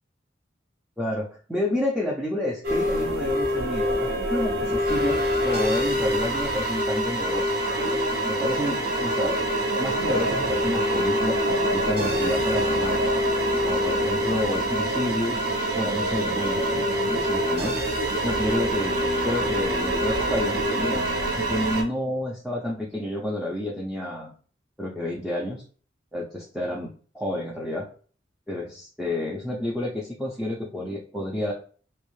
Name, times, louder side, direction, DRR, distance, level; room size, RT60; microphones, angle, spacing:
voice 1, 1.0-7.6 8.3-9.4 9.8-13.2 13.6-15.5 15.8-17.8 18.2-19.0 19.2-21.1 21.3-24.3 24.8-25.6 26.1-27.9 28.5-31.5, left 1 dB, ahead, -4 dB, 0.4 m, -30 dB
sound 1, 2.6-21.8, equal, 55° right, 0.6 m, -25 dB
2.6 x 2.0 x 3.0 m, 0.41 s
head